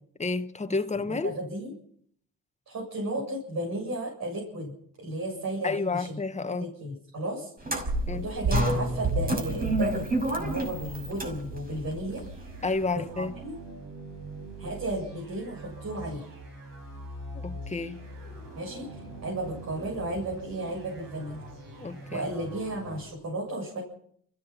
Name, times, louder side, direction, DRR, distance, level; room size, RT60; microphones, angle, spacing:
voice 1, 0.2-1.3 5.6-6.7 8.1-8.3 12.6-13.3 17.3-18.0 21.8-22.2, left 3 dB, 20° left, 1.6 m, -30 dB
voice 2, 1.0-1.7 2.7-6.2 6.5-7.5 8.1-12.2 12.9-13.6 14.6-16.2 18.5-21.4 22.1-23.8, right 1 dB, 50° right, 7.7 m, -34 dB
sound 1, 7.6-12.9, right 1 dB, 25° right, 6.0 m, -29 dB
sound 2, 12.1-23.1, right 1 dB, 80° right, 7.4 m, -43 dB
29.0 x 15.5 x 6.0 m
cardioid pair, 85°, 34 cm